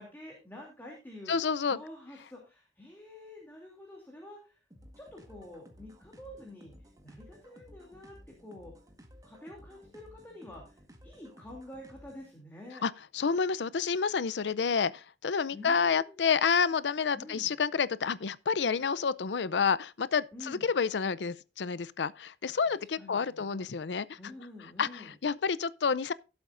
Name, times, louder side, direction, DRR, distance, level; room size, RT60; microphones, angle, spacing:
voice 1, 0.0-1.3 1.7-4.6 4.9-8.7 9.2-10.8 11.0-12.8 15.5-16.2 17.1-17.5 20.3-20.6 22.6-23.6 24.2-25.1, left 1 dB, 10° left, 2.8 m, -48 dB
voice 2, 1.3-1.8 12.8-24.2 24.8-26.1, left 5 dB, 75° left, 0.5 m, -29 dB
sound 1, 4.7-12.3, equal, 20° right, 1.6 m, -55 dB
16.5 x 7.9 x 2.6 m
head